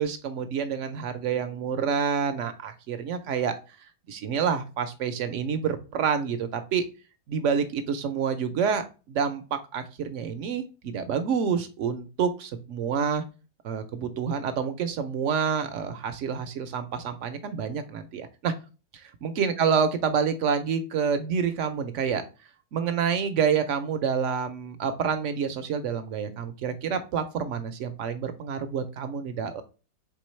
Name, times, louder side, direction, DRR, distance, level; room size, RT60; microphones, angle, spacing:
voice 1, 0.0-3.8 4.1-6.9 7.3-13.2 13.6-18.5 18.9-22.2 22.7-29.6, right 6 dB, 70° right, 9 dB, 0.7 m, -28 dB
4.6 x 3.5 x 3.0 m, 0.33 s
omnidirectional pair, 1.7 m